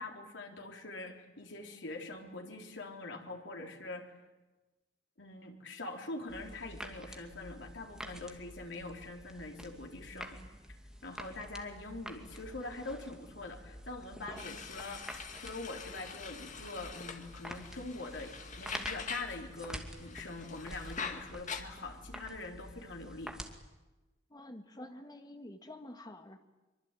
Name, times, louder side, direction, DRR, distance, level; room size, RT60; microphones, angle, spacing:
voice 1, 0.0-4.1 5.2-10.4 11.0-23.3, left 2 dB, 75° left, 2 dB, 4.0 m, -44 dB
sound 1, 6.3-23.5, equal, 5° right, 2.5 m, -48 dB
sound 2, 14.4-19.4 19.7-21.6, left 6 dB, 40° left, 2.1 m, -44 dB
voice 2, 24.3-26.4, left 1 dB, 20° left, 6 dB, 1.9 m, -48 dB
24.5 x 24.5 x 9.2 m, 1.1 s
head